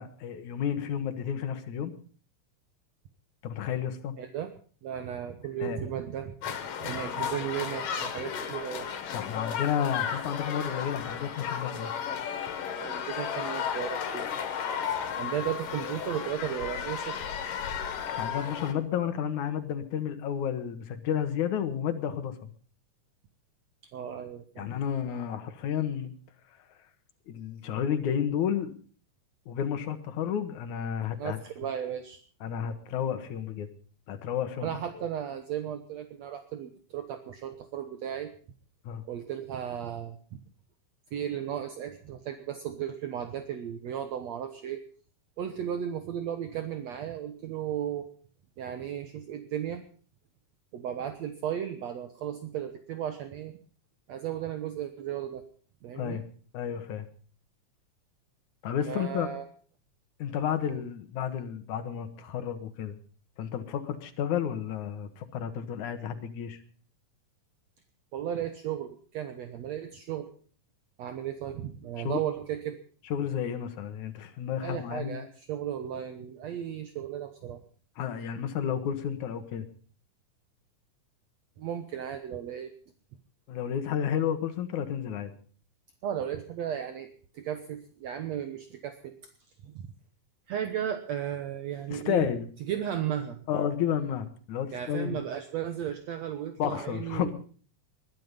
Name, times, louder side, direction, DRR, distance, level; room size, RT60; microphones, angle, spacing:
voice 1, 0.0-1.9 3.4-4.2 5.6-5.8 9.1-11.9 18.1-22.5 24.6-26.1 27.3-28.7 29.5-31.4 32.4-33.7 34.1-35.0 38.8-39.0 55.9-56.2 56.5-57.1 58.6-59.3 60.2-63.0 63.4-66.6 72.0-72.2 73.1-75.2 78.0-79.7 83.5-85.3 91.9-92.5 93.5-95.2 96.6-97.3, left 9 dB, 70° left, 8 dB, 2.9 m, -31 dB
voice 2, 4.2-4.5 4.8-6.4 6.8-8.9 12.8-14.3 15.2-17.2 23.9-24.7 31.2-32.2 34.6-38.3 39.1-40.4 41.1-44.8 45.4-48.1 48.6-49.8 50.7-53.6 54.1-55.4 55.8-56.2 58.9-59.5 60.7-60.8 68.1-70.3 71.0-72.8 74.6-77.6 81.6-82.7 86.0-89.2 89.6-89.9 90.5-92.3 92.7-93.4 94.7-97.3, right 10 dB, 65° right, 8 dB, 2.1 m, -35 dB
sound 1, 6.4-18.7, left 8 dB, 85° left, 3.5 m, -34 dB
21.0 x 12.0 x 5.3 m, 0.42 s
omnidirectional pair, 3.7 m